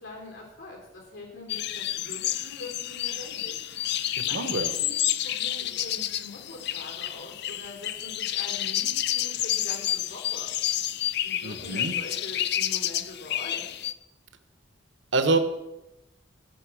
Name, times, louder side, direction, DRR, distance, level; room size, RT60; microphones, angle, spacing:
voice 1, 0.0-10.9 11.2-13.7, left 2 dB, 90° left, 0 dB, 3.8 m, -44 dB
sound 1, 1.5-13.9, left 12 dB, 60° left, 0.5 m, -30 dB
voice 2, 4.2-4.7 11.4-11.9 15.1-15.4, right 3 dB, 65° right, 8 dB, 1.3 m, -26 dB
17.0 x 5.9 x 6.3 m, 0.92 s
head